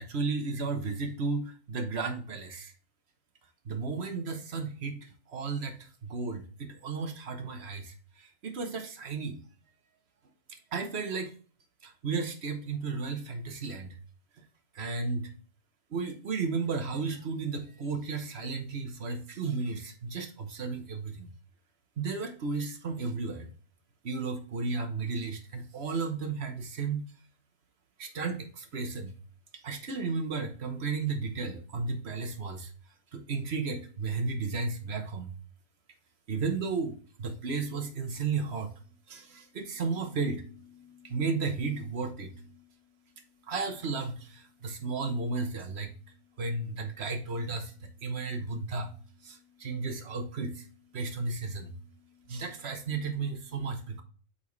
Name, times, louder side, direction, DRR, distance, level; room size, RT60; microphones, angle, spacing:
voice 1, 0.0-2.7 3.6-9.4 10.5-11.3 11.8-14.0 14.4-14.5 14.7-15.3 15.9-21.3 22.0-23.5 24.0-27.1 28.0-29.1 29.6-32.7 33.1-35.3 36.3-38.7 39.1-42.7 43.4-54.0, right 4 dB, 55° right, 6 dB, 1.3 m, -34 dB
7.8 x 4.2 x 3.2 m, 0.40 s
omnidirectional pair, 1.3 m